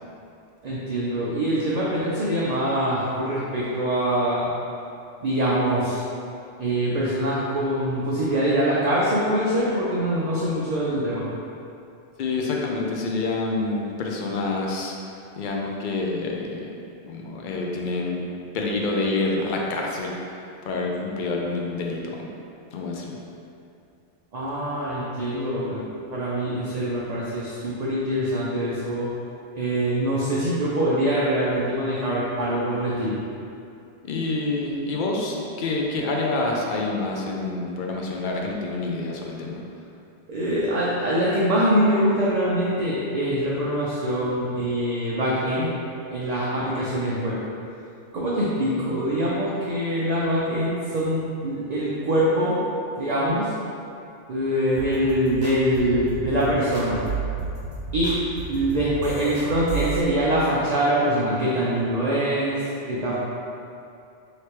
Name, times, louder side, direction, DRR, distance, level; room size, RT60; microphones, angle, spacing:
voice 1, 0.6-4.5 5.2-6.0 6.6-11.2 24.3-25.8 26.1-29.1 29.6-33.2 40.3-45.7 46.1-47.4 48.1-52.6 53.0-53.5 54.3-57.0 57.9-58.2 58.5-63.1, right 1 dB, 45° right, -7 dB, 0.6 m, -24 dB
voice 2, 12.2-14.9 15.4-16.6 17.0-18.2 18.5-20.2 20.6-22.3 22.7-23.2 34.0-39.6, left 3 dB, 55° left, -1 dB, 0.6 m, -27 dB
sound 1, 54.8-60.0, right 5 dB, 80° right, 1.3 m, -32 dB
3.3 x 3.0 x 4.4 m, 2.5 s
omnidirectional pair, 1.2 m